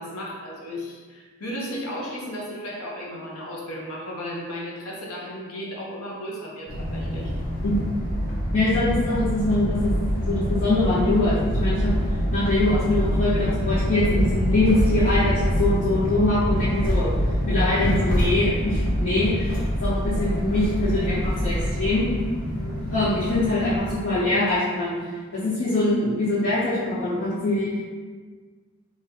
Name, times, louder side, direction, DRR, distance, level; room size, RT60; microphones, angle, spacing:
voice 1, 0.0-7.3 22.5-22.8, equal, 85° left, -3 dB, 0.9 m, -35 dB
sound 1, 6.7-23.9, equal, 40° left, 0.8 m, -25 dB
voice 2, 8.5-11.9 12.3-17.1 17.5-22.1 22.9-25.1 25.3-27.7, left 2 dB, 65° left, -15 dB, 1.5 m, -23 dB
3.0 x 2.8 x 3.7 m, 1.5 s
head